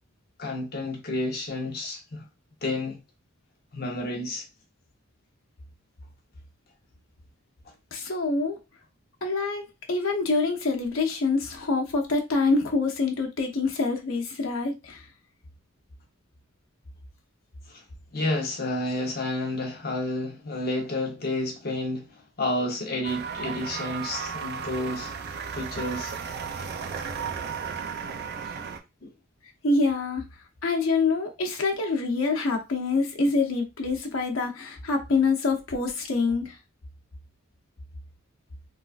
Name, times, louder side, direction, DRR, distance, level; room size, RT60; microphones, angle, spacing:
voice 1, 0.4-2.2 2.6-3.0 3.7-4.4 17.7-17.8 18.1-25.1 25.5-26.1 29.0-29.1, left 1 dB, 50° left, 0.9 m, -30 dB
voice 2, 7.9-8.6 9.2-15.1 29.6-30.3 30.6-36.6, left 3 dB, 80° left, 0.9 m, -26 dB
sound 1, 23.0-28.8, right 6 dB, 50° right, 0.4 m, -34 dB
3.7 x 2.4 x 2.4 m
head